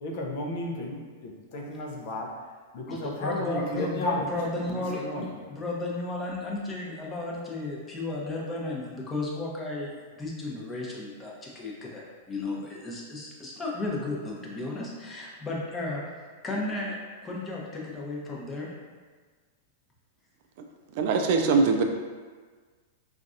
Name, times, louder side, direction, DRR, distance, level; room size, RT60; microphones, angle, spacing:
voice 1, 0.0-2.4 2.7-4.3 4.6-5.5, left 1 dB, 60° left, 0 dB, 0.6 m, -33 dB
voice 2, 2.9-17.0 17.2-18.7, left 2 dB, 20° left, -3 dB, 0.8 m, -34 dB
voice 3, 21.0-21.8, right 4 dB, 55° right, 4 dB, 0.3 m, -22 dB
3.9 x 2.4 x 2.5 m, 1.5 s
hypercardioid pair, 110°, 0 cm